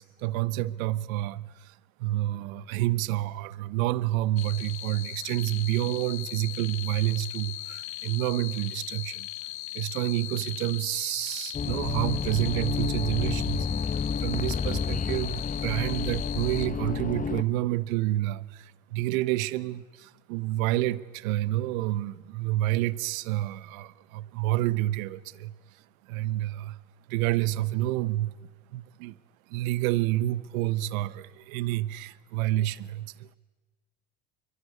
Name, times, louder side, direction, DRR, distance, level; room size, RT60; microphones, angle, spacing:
voice 1, 0.0-1.7 2.0-9.3 9.7-13.7 14.2-25.5 26.1-26.8 27.1-28.3 28.7-29.2 29.5-33.3, right 16 dB, 75° right, 1.0 m, -29 dB
sound 1, 4.4-16.7, left 17 dB, 75° left, 1.3 m, -38 dB
sound 2, 11.5-17.4, left 5 dB, 20° left, 1.1 m, -30 dB
26.0 x 23.0 x 9.6 m
hypercardioid pair, 95°, 41 cm